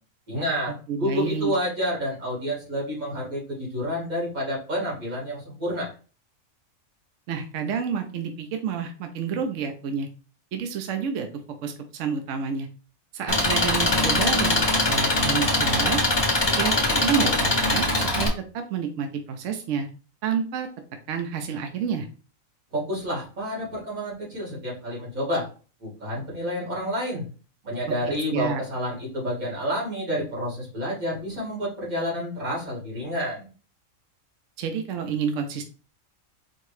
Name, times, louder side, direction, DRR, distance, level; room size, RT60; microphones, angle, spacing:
voice 1, 0.3-0.7 1.0-5.9 22.7-25.5 25.8-27.2 27.6-33.5, equal, 90° right, -5 dB, 2.7 m, -29 dB
voice 2, 0.9-1.5 7.3-10.1 10.5-11.3 11.6-12.7 13.1-16.0 16.6-19.9 20.2-20.7 21.1-22.1 28.1-28.6 34.6-35.6, right 6 dB, 70° right, 5 dB, 0.9 m, -29 dB
Engine, 13.3-18.3, left 2 dB, 25° left, 0.7 m, -22 dB
4.4 x 2.9 x 3.2 m, 0.38 s
omnidirectional pair, 1.4 m